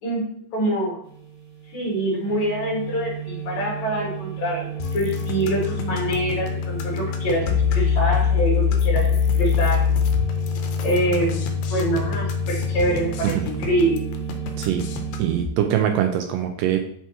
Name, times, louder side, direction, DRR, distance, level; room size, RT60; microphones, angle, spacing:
voice 1, 0.0-0.9 1.7-9.9 10.8-14.0, right 1 dB, 55° left, -4 dB, 2.9 m, -25 dB
sound 1, 1.0-15.4, right 9 dB, 55° right, 2.1 m, -34 dB
sound 2, 4.8-15.5, left 7 dB, 85° left, 2.4 m, -24 dB
voice 2, 15.2-16.8, right 10 dB, 80° right, 5 dB, 2.1 m, -22 dB
5.9 x 5.6 x 2.9 m, 0.66 s
omnidirectional pair, 4.1 m